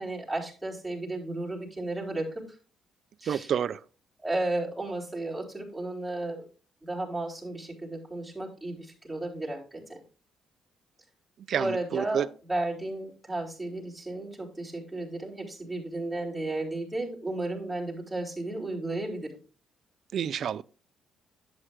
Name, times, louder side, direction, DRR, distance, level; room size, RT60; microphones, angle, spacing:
voice 1, 0.0-2.5 3.2-3.5 4.2-6.4 6.8-10.0 11.6-19.4, right 2 dB, ahead, 4.2 m, -33 dB
voice 2, 3.3-3.8 11.5-12.3 20.1-20.6, right 8 dB, 60° right, 0.4 m, -29 dB
11.0 x 8.7 x 2.5 m
cardioid pair, 90°, 0 cm